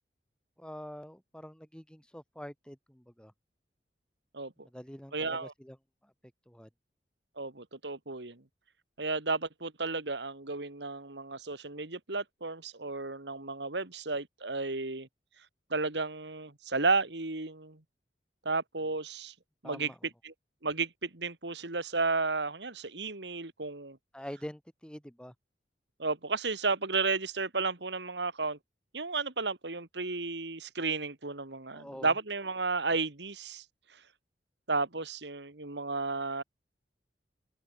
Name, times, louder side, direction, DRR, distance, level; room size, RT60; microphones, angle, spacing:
voice 1, 0.6-3.3 4.6-5.8 6.0-6.1 6.5-6.7 19.6-20.0 24.1-25.3 31.7-32.2, equal, 5° left, 4.7 m, -46 dB
voice 2, 4.3-4.7 5.1-5.5 7.4-8.4 9.0-15.1 15.7-17.8 18.4-19.3 19.6-19.9 20.2-20.3 20.6-24.0 26.0-28.6 28.9-33.6 34.7-36.4, right 3 dB, 70° right, 2.4 m, -33 dB
open air
head